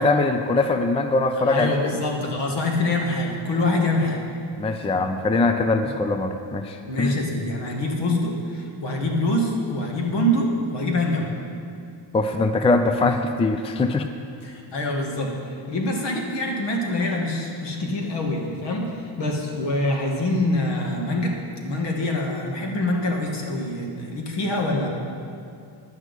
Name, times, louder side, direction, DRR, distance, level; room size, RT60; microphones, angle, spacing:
voice 1, 0.0-1.8 4.6-7.1 12.1-14.1, left 3 dB, 15° left, 7 dB, 0.4 m, -22 dB
voice 2, 1.5-4.2 6.9-11.3 14.4-15.3 15.7-21.4 21.6-24.9, left 1 dB, 60° left, 0 dB, 2.2 m, -25 dB
11.0 x 6.3 x 8.3 m, 2.4 s
cardioid pair, 110°, 47 cm